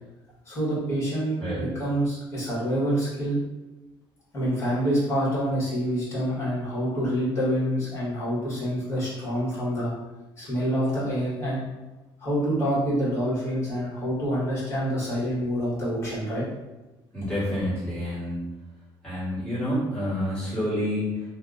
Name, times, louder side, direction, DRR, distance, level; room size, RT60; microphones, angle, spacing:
voice 1, 0.4-3.4 4.3-9.9 10.4-11.6 12.2-16.4, equal, 30° left, -8 dB, 1.4 m, -27 dB
voice 2, 17.1-18.5 19.0-21.3, equal, 10° left, -11 dB, 1.5 m, -28 dB
2.8 x 2.2 x 3.7 m, 1.1 s
cardioid pair, 170°, 9 cm